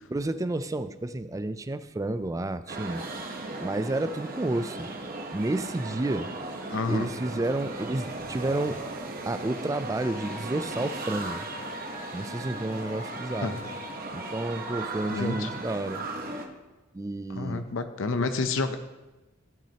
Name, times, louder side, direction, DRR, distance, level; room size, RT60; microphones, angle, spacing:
voice 1, 0.1-3.0 3.6-4.9 5.3-6.3 6.9-8.8 9.3-11.5 12.1-13.6 14.1-16.0 16.9-17.6, right 2 dB, 15° right, 12 dB, 0.4 m, -30 dB
sound 1, 2.7-16.4, right 2 dB, 45° right, 1.0 m, -37 dB
sound 2, 6.6-10.0, equal, 25° left, 1.3 m, -54 dB
voice 2, 6.7-7.1 13.4-13.6 15.1-15.5 17.3-18.8, left 3 dB, 65° left, 8 dB, 0.6 m, -29 dB
Wind instrument woodwind instrument, 10.0-14.8, left 4 dB, 50° left, 1.5 m, -44 dB
16.0 x 6.1 x 2.9 m, 1.1 s
head